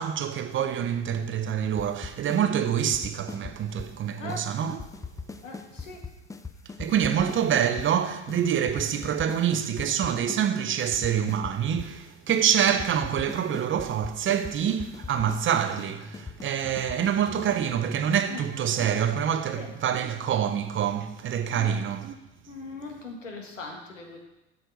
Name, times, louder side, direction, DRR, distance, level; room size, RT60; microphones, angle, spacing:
voice 1, 0.0-4.8 6.8-22.1, right 9 dB, 35° right, 0.8 m, -26 dB
sound 1, 1.8-2.4 2.7-4.0 4.3-4.4 4.7-7.9 8.3-8.4 8.7-10.4 10.7-12.0 12.3-12.4 12.7-17.8, left 4 dB, 10° left, 0.5 m, -40 dB
voice 2, 5.4-6.0 18.3-18.6 19.5-19.7 21.5-21.8 22.5-24.2, left 3 dB, 85° left, 1.7 m, -40 dB
7.7 x 6.3 x 5.3 m
hypercardioid pair, 75°, 37 cm